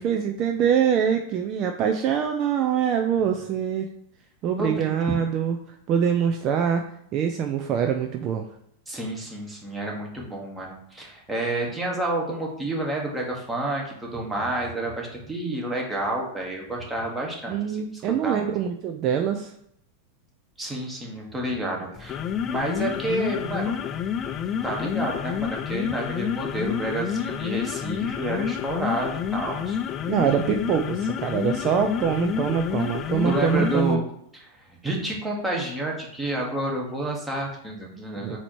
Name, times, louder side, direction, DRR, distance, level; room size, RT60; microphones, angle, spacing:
voice 1, 0.0-3.9 4.4-5.6 5.9-6.8 7.1-8.4 17.5-19.5 30.1-34.0 38.2-38.4, right 8 dB, 40° right, 5 dB, 0.4 m, -24 dB
voice 2, 4.6-4.9 8.9-18.5 20.6-22.2 22.5-23.8 24.2-29.8 33.2-34.0 34.3-34.5 34.8-38.4, right 1 dB, 10° right, -1 dB, 1.3 m, -30 dB
sound 1, 22.0-33.9, left 8 dB, 30° left, 0.3 m, -29 dB
4.2 x 2.8 x 4.5 m, 0.71 s
hypercardioid pair, 110°, 0 cm